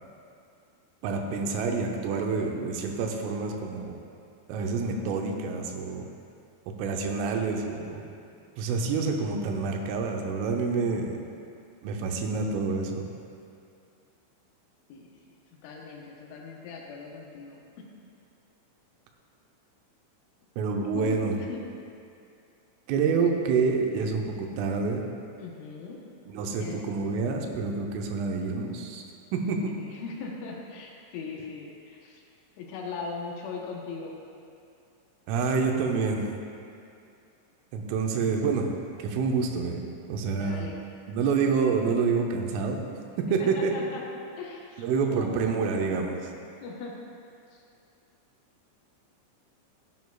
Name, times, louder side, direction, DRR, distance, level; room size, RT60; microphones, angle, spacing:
voice 1, 1.0-4.0 4.5-6.1 6.7-8.0 8.6-11.2 11.8-13.1 20.6-21.4 22.9-25.0 26.3-29.0 29.3-29.8 35.3-36.3 37.7-38.7 39.0-39.8 40.1-40.7 41.1-42.8 43.2-43.7 44.8-46.2, right 4 dB, 90° right, 2 dB, 3.3 m, -27 dB
voice 2, 15.6-17.6 20.9-21.0 21.3-21.6 25.4-26.0 26.6-26.8 29.8-32.2 32.6-34.1 40.3-40.8 43.4-44.0 44.4-45.3 46.6-46.9, left 4 dB, 80° left, -1 dB, 3.3 m, -39 dB
14.0 x 9.3 x 2.4 m, 2.5 s
omnidirectional pair, 5.6 m